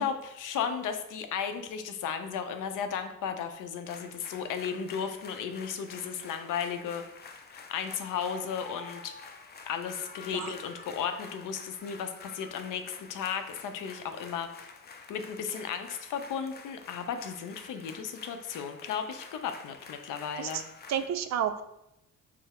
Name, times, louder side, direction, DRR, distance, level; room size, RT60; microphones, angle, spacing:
voice 1, 0.0-7.0 7.5-9.1 9.7-14.5 15.1-20.6, left 7 dB, 80° left, 8 dB, 0.6 m, -35 dB
sound 1, 3.8-21.1, left 5 dB, 30° left, 0.5 m, -49 dB
voice 2, 20.9-21.6, right 9 dB, 60° right, 10 dB, 0.4 m, -31 dB
4.7 x 2.0 x 4.2 m, 0.84 s
cardioid pair, 90°, 31 cm